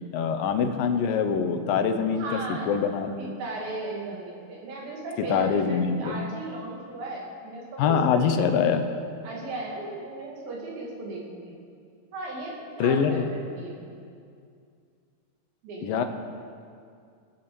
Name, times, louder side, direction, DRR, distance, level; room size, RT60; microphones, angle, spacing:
voice 1, 0.1-3.2 5.3-6.2 7.8-8.9 12.8-13.3 15.8-16.0, left 6 dB, 75° left, 7 dB, 2.6 m, -24 dB
voice 2, 2.1-2.8 3.2-8.8 9.2-11.5 12.1-14.0 15.6-16.1, right 2 dB, 75° right, -3 dB, 4.3 m, -37 dB
19.0 x 8.3 x 7.1 m, 2.3 s
omnidirectional pair, 4.2 m